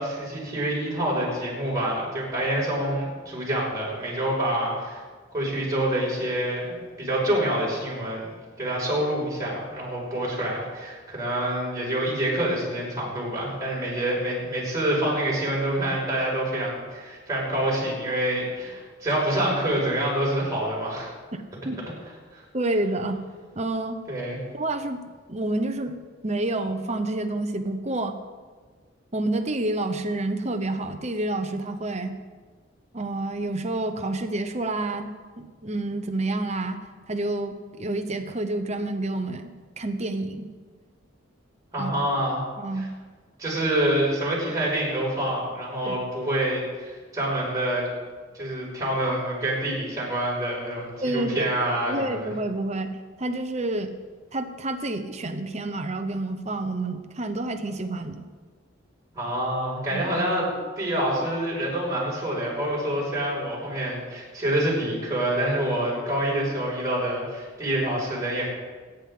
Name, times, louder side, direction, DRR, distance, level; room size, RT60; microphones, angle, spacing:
voice 1, 0.0-5.0 5.3-8.3 8.6-21.1 22.3-22.4 24.1-24.4 41.7-42.4 42.7-42.9 43.4-47.9 48.3-52.3 59.1-60.5 60.8-68.5, right 1 dB, 15° right, -6 dB, 5.7 m, -27 dB
voice 2, 21.3-21.8 22.5-23.2 23.5-24.0 24.5-25.0 25.3-26.0 26.2-28.2 29.1-32.2 32.9-35.1 35.4-36.8 37.1-39.5 39.8-40.5 41.8-41.9 42.6-42.9 45.8-46.0 51.0-51.5 51.9-52.9 53.2-53.9 54.3-58.2 59.9-60.0, right 2 dB, 35° right, 7 dB, 1.0 m, -28 dB
24.5 x 10.5 x 3.8 m, 1.4 s
head